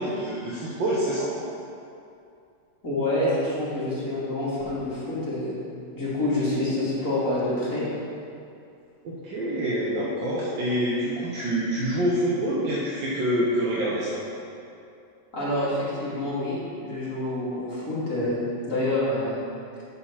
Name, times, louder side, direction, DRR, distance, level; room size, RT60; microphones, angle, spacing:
voice 1, 0.0-1.3 9.0-14.2, right 1 dB, 90° right, -6 dB, 1.7 m, -26 dB
voice 2, 2.8-5.5 5.9-7.8 15.3-19.4, left 1 dB, 45° left, -9 dB, 2.7 m, -27 dB
8.9 x 4.4 x 5.7 m, 2.5 s
omnidirectional pair, 1.9 m